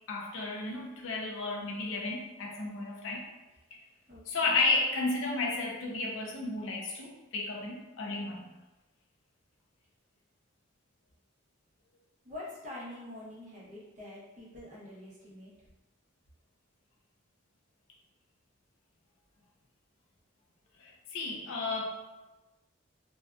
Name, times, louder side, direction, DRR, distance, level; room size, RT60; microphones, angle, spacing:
voice 1, 0.1-3.3 4.3-8.5 20.8-22.0, left 3 dB, 80° left, 0 dB, 0.5 m, -33 dB
voice 2, 12.2-15.5, left 1 dB, 35° right, -6 dB, 0.7 m, -45 dB
2.6 x 2.2 x 2.3 m, 1.1 s
head